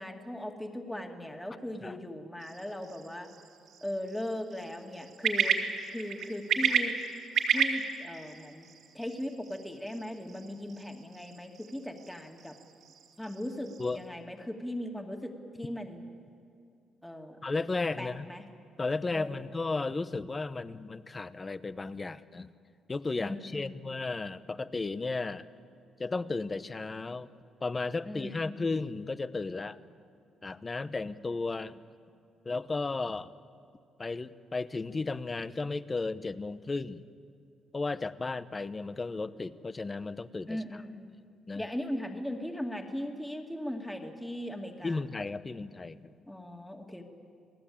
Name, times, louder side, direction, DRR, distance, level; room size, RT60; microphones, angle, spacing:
voice 1, 0.0-3.3 3.8-5.6 5.9-7.0 7.5-8.7 8.9-12.6 13.2-16.0 17.0-17.4 18.0-18.4 19.1-19.6 23.2-23.9 28.0-28.7 40.5-41.1 41.6-45.1 46.3-47.0, left 1 dB, 10° left, 3 dB, 2.4 m, -38 dB
sound 1, 2.4-14.1, right 7 dB, 75° right, 2.8 m, -34 dB
voice 2, 17.4-18.3 18.8-22.5 22.9-25.5 26.0-27.3 27.6-29.8 30.4-31.8 32.4-33.3 34.0-37.0 37.7-40.6 41.5-41.6 44.8-46.1, left 3 dB, 25° left, 14 dB, 1.0 m, -34 dB
29.0 x 19.0 x 8.7 m, 2.5 s
cardioid pair, 90°, 0 cm